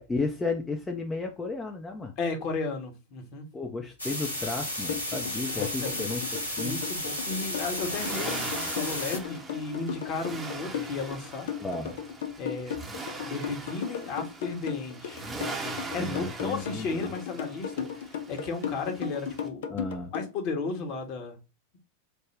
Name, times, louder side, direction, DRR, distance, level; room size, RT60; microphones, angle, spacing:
voice 1, 0.0-2.1 3.5-6.8 8.7-8.8 11.6-12.0 15.9-17.1 19.7-20.1, left 3 dB, 10° left, 0.5 m, -33 dB
voice 2, 2.2-3.5 5.6-6.0 6.6-11.5 12.4-12.8 13.2-15.3 15.9-19.6 20.1-21.4, left 3 dB, 40° left, 1.0 m, -34 dB
sound 1, 4.0-9.2, left 1 dB, 85° left, 1.0 m, -33 dB
sound 2, 4.9-20.3, left 8 dB, 55° left, 0.6 m, -35 dB
Accelerating revving vroom, 5.4-19.5, right 3 dB, 15° right, 0.7 m, -42 dB
3.6 x 2.1 x 3.3 m
figure-of-eight pair, 90°, 0 cm